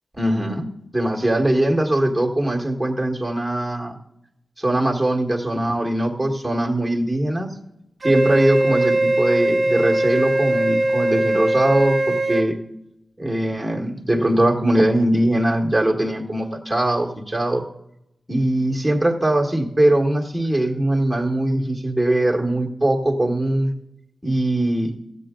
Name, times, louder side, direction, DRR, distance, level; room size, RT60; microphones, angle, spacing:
voice 1, 0.2-0.7 0.9-4.0 4.6-7.5 8.0-12.6 13.2-17.6 18.3-23.7 24.2-24.9, right 1 dB, 5° right, 0 dB, 1.5 m, -21 dB
Wind instrument woodwind instrument, 8.0-12.5, right 1 dB, 45° right, 1.1 m, -20 dB
15.0 x 8.2 x 3.7 m, 0.86 s
wide cardioid pair, 110°, 0 cm